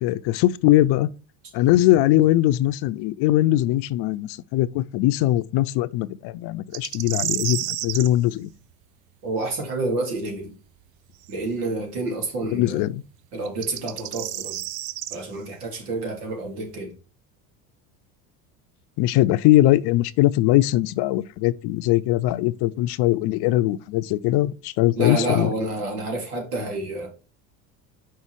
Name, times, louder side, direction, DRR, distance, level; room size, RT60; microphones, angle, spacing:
voice 1, 0.0-1.1 1.5-8.5 12.4-13.0 19.0-25.5, left 15 dB, 60° left, 0.6 m, -21 dB
sound 1, 6.7-8.1 11.2-11.3 13.5-15.2, right 13 dB, 50° right, 0.7 m, -30 dB
voice 2, 9.2-10.5 11.3-12.9 13.3-14.6 15.1-16.9 24.9-27.1, right 2 dB, 85° right, 3.0 m, -29 dB
5.6 x 4.7 x 4.6 m
hypercardioid pair, 80°, 45 cm